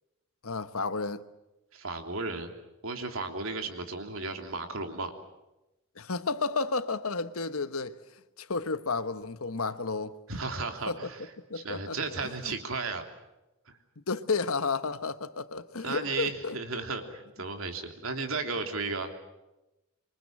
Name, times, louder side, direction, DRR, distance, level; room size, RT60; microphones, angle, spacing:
voice 1, 0.4-1.2 6.0-8.0 8.4-10.1 10.9-11.0 11.4-12.0 12.4-12.5 14.0-16.6, left 4 dB, 85° left, 1.3 m, -32 dB
voice 2, 1.7-2.5 2.8-5.1 10.3-11.3 11.5-13.0 13.7-13.8 15.8-19.1, right 3 dB, 75° right, 3.2 m, -34 dB
26.5 x 24.0 x 7.6 m
head